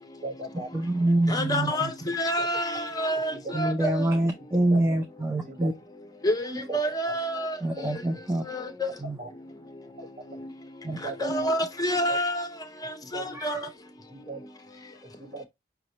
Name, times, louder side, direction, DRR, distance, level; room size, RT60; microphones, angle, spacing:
voice 1, 0.2-0.7 2.4-2.5 3.3-3.7 4.5-4.8 5.4-5.7 6.7-6.8 7.0-7.2 7.8-7.9 9.2-9.3 10.0-10.1 10.9-11.5 12.1-12.2 13.0-13.3 14.1-14.4 15.0-15.5, right 2 dB, 45° right, 1.4 m, -38 dB
voice 2, 0.7-1.9 3.5-5.7 7.6-8.4 9.0-9.2 10.8-11.0 13.3-13.6, right 1 dB, 15° right, 0.4 m, -26 dB
voice 3, 1.3-1.9 2.2-4.1 6.2-6.3 6.7-7.5 8.8-8.9 11.2-12.4 13.1-13.6, equal, 20° left, 0.7 m, -27 dB
5.8 x 2.9 x 3.0 m
head